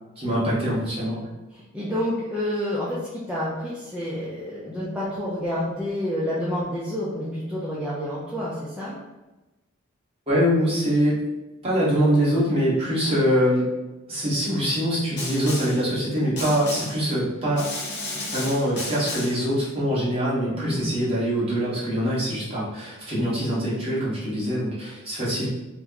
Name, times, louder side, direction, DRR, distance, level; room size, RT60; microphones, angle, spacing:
voice 1, 0.2-1.3 10.3-11.2 11.6-13.7 14.1-17.6 18.1-25.5, equal, 25° right, -9 dB, 1.2 m, -24 dB
voice 2, 1.5-9.0 20.5-20.9, left 1 dB, 5° right, -9 dB, 0.4 m, -29 dB
Snare drum, 15.2-15.9 16.4-17.1 17.6-19.5, left 2 dB, 50° left, 0.8 m, -33 dB
3.0 x 2.1 x 3.7 m, 1.1 s
head